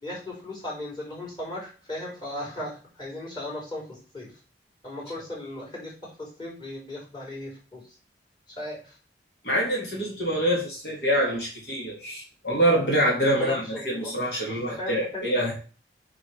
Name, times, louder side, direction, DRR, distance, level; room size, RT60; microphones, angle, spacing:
voice 1, 0.0-2.7 3.0-3.9 4.1-4.3 4.8-5.9 6.2-7.8 8.6-8.8 13.4-14.1 14.8-15.2, left 1 dB, 25° left, -2 dB, 4.6 m, -36 dB
voice 2, 9.4-15.5, right 1 dB, 65° left, -3 dB, 3.5 m, -25 dB
6.6 x 6.2 x 6.6 m, 0.36 s
head